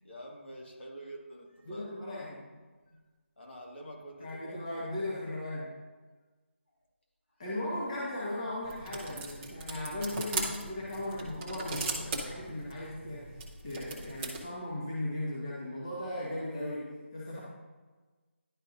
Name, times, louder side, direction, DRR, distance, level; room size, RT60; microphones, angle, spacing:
voice 1, 0.0-1.9 2.9-3.0 3.4-4.6, equal, 65° left, -2 dB, 2.0 m, -47 dB
voice 2, 1.6-2.4 4.2-5.7 7.4-13.4 13.6-17.4, left 1 dB, 30° left, -6 dB, 1.4 m, -37 dB
sound 1, 8.6-14.4, right 3 dB, 10° right, 0.5 m, -39 dB
11.0 x 4.8 x 2.6 m, 1.3 s
figure-of-eight pair, 170°, 7 cm